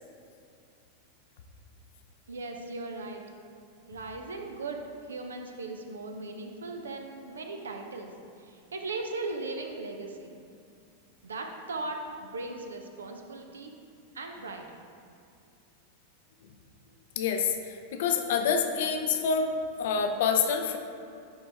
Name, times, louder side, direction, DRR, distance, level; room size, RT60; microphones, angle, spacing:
voice 1, 2.3-3.2 3.9-4.8 5.1-8.1 8.4-10.3 11.2-13.7 14.1-14.7, right 3 dB, 70° right, 3 dB, 0.7 m, -38 dB
voice 2, 17.2-19.5 19.8-20.8, left 6 dB, 55° left, 5 dB, 0.7 m, -27 dB
11.0 x 4.0 x 3.5 m, 2.5 s
figure-of-eight pair, 90°, 0 cm